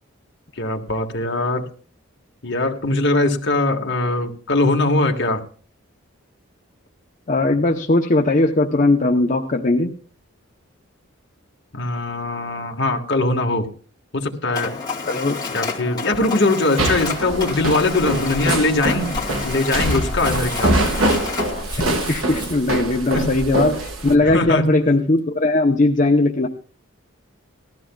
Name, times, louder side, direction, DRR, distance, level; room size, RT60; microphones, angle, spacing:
voice 1, 0.5-1.7 2.4-5.4 11.7-13.7 14.1-14.8 15.5-20.8 23.1-23.3 24.2-24.7, left 2 dB, 55° left, 2 dB, 1.5 m, -21 dB
voice 2, 7.3-9.9 15.0-15.4 21.8-26.5, left 2 dB, 35° left, 2 dB, 0.7 m, -19 dB
Mechanisms, 14.5-21.6, left 4 dB, 20° left, 2.2 m, -29 dB
sound 1, 16.8-24.1, right 1 dB, 70° right, 1.4 m, -24 dB
Crumpling crinkling, 20.2-24.7 25.2-25.3, right 1 dB, 20° right, 1.6 m, -38 dB
19.0 x 14.0 x 2.3 m, 0.42 s
head